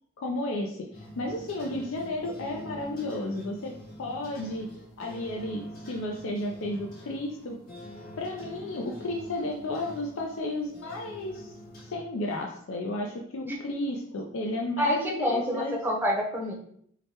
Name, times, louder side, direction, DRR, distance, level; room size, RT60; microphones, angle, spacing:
voice 1, 0.2-3.7 4.0-4.7 5.0-5.6 5.9-7.5 8.2-11.5 11.8-15.7, left 1 dB, 65° left, 0 dB, 0.5 m, -33 dB
sound 1, 0.9-11.9, equal, 45° left, 0.9 m, -45 dB
voice 2, 14.8-16.5, left 1 dB, 10° right, -2 dB, 0.7 m, -27 dB
4.8 x 2.1 x 2.8 m, 0.66 s
head